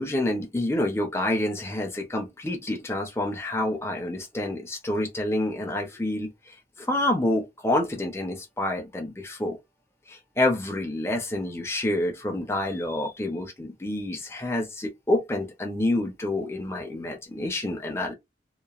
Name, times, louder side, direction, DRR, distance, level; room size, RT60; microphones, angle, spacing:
voice 1, 0.0-6.3 6.8-9.6 10.1-18.1, left 1 dB, 15° left, 0.6 m, -28 dB
2.9 x 2.1 x 2.4 m
head